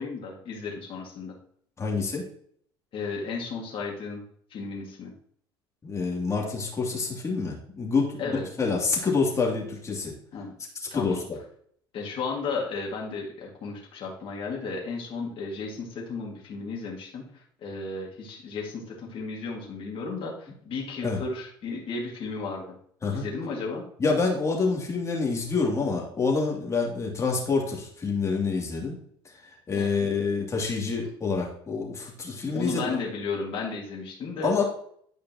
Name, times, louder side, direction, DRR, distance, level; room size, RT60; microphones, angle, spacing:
voice 1, 0.0-1.3 2.9-4.2 4.5-5.1 8.2-8.4 10.3-10.5 10.9-11.2 11.9-22.7 23.1-23.8 29.8-30.0 32.5-34.5, left 4 dB, 45° left, -1 dB, 2.0 m, -34 dB
voice 2, 1.8-2.2 5.8-10.1 10.9-11.2 21.0-21.2 23.0-23.3 24.0-29.0 29.2-29.3 29.7-32.9 34.4-34.6, left 4 dB, 25° left, -1 dB, 2.5 m, -27 dB
9.5 x 5.0 x 2.9 m, 0.63 s
hypercardioid pair, 75°, 12 cm